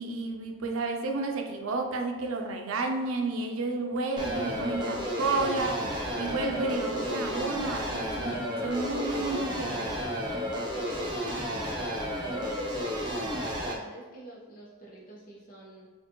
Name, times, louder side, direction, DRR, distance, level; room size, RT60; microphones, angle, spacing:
voice 1, 0.0-5.9 6.2-9.9, right 3 dB, 80° right, 3 dB, 0.5 m, -31 dB
sound 1, 4.2-13.7, equal, 20° right, 0.5 m, -32 dB
voice 2, 12.3-15.9, right 1 dB, 40° left, -5 dB, 0.9 m, -47 dB
4.4 x 2.6 x 3.0 m, 1.3 s
head